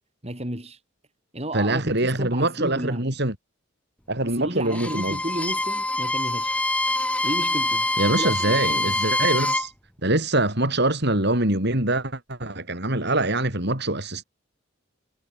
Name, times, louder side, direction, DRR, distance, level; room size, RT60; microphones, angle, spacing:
voice 1, 0.2-0.8 1.3-3.2 4.2-6.6 7.2-9.1, right 1 dB, 30° right, 5.3 m, -33 dB
voice 2, 1.5-3.3 4.1-5.2 8.0-9.7 10.0-14.2, right 2 dB, 55° right, 5.4 m, -24 dB
Bowed string instrument, 4.7-9.7, left 1 dB, 5° left, 2.6 m, -25 dB
head